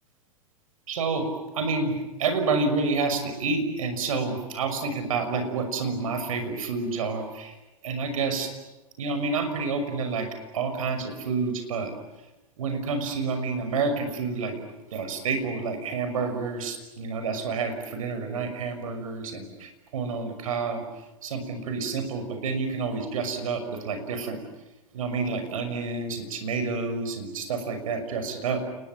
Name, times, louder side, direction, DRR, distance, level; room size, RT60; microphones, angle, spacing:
voice 1, 0.9-1.3 1.5-7.5 7.8-8.5 9.0-11.9 12.6-20.8 21.2-24.4 24.9-28.6, right 4 dB, 70° right, 7 dB, 6.1 m, -29 dB
29.0 x 22.0 x 9.0 m, 1.0 s
hypercardioid pair, 100°, 18 cm